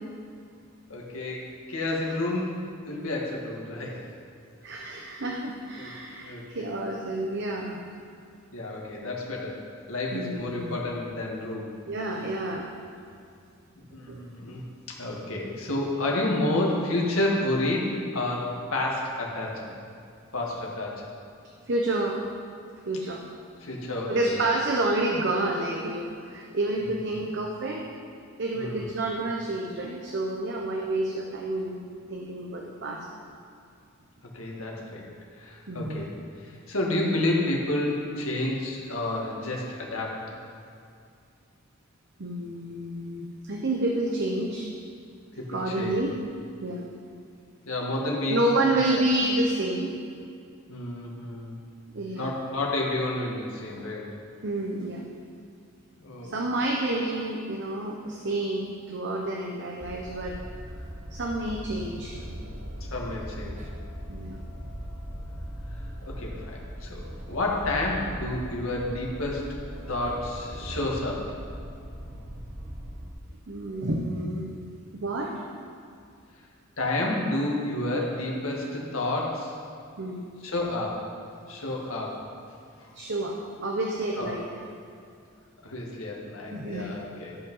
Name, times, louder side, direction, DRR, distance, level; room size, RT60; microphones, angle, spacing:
voice 1, 0.9-4.0 5.8-5.9 6.2-6.7 8.5-9.6 9.9-11.7 13.9-14.6 14.9-19.7 20.3-21.0 23.6-24.3 26.8-27.0 28.5-28.9 34.3-35.1 35.4-36.1 36.4-40.2 45.4-46.0 47.7-48.5 48.9-49.0 50.7-51.5 52.1-54.1 56.0-56.3 62.9-63.6 65.7-69.4 69.9-71.4 76.8-79.5 80.4-81.0 81.5-82.2 84.2-84.4 85.6-87.4, left 2 dB, 80° left, -2 dB, 2.0 m, -30 dB
voice 2, 4.6-7.8 10.1-10.8 11.9-12.7 14.1-14.2 21.7-22.2 22.9-23.2 24.1-27.9 28.4-31.8 32.1-33.1 35.7-36.0 42.2-44.7 45.5-46.1 46.6-46.9 48.3-50.0 51.9-52.3 54.4-55.1 56.2-60.4 61.1-62.5 64.1-64.4 69.8-69.9 70.6-70.8 73.5-74.5 74.9-75.4 80.0-80.2 82.9-84.4 86.5-86.9, right 1 dB, 55° right, 0 dB, 0.9 m, -29 dB
sound 1, 59.8-73.1, equal, 35° right, 1.1 m, -39 dB
13.5 x 5.6 x 5.5 m, 2.4 s
head